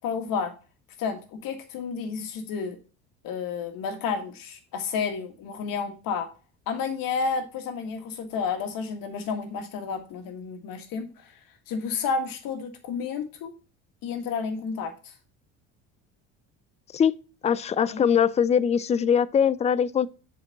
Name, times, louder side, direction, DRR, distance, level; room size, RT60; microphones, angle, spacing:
voice 1, 0.0-0.5 1.0-2.8 3.2-6.3 6.7-11.3 11.7-13.5 14.0-15.1 17.9-18.0, left 5 dB, 65° left, 1.9 m, -31 dB
voice 2, 17.4-20.1, left 7 dB, 20° left, 0.4 m, -22 dB
7.4 x 4.7 x 4.0 m
supercardioid pair, 85°, 36 cm